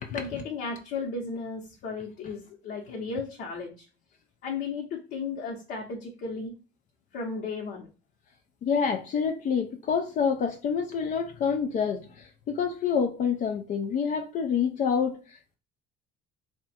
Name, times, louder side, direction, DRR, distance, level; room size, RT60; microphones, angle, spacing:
voice 1, 0.1-3.8 4.4-6.5 7.1-7.9, left 4 dB, 65° left, 0.9 m, -35 dB
voice 2, 8.6-15.6, left 6 dB, 50° left, 0.5 m, -27 dB
3.4 x 2.2 x 4.1 m
supercardioid pair, 95°, 17 cm